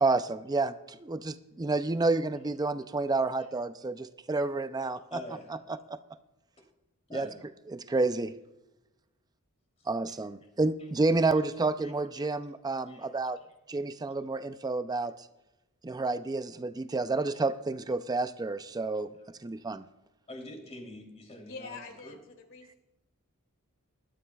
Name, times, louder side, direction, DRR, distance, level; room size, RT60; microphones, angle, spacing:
voice 1, 0.0-5.2 5.9-6.0 7.1-7.3 7.7-8.3 9.9-13.4 13.7-15.1 15.8-19.1 19.4-19.8, right 3 dB, 20° right, 12 dB, 0.4 m, -29 dB
voice 2, 5.1-5.6 7.1-7.4 9.8-9.9 11.8-12.3 12.9-13.1 13.4-13.5 20.3-22.1, left 1 dB, 30° left, 1 dB, 3.1 m, -45 dB
voice 3, 21.5-22.8, left 4 dB, 60° left, 4 dB, 2.3 m, -45 dB
20.0 x 13.0 x 2.3 m, 0.98 s
head